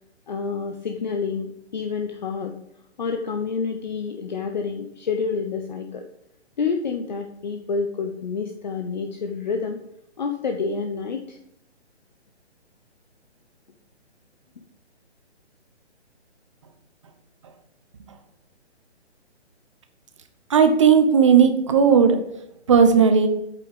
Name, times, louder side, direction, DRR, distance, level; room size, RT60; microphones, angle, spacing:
voice 1, 0.3-2.5 3.0-6.0 6.6-9.8 10.2-11.4, left 5 dB, 40° left, 5 dB, 1.0 m, -28 dB
voice 2, 20.5-22.2 22.7-23.3, right 6 dB, 25° right, 7 dB, 1.0 m, -15 dB
8.5 x 7.3 x 7.0 m, 0.77 s
hypercardioid pair, 170°, 35 cm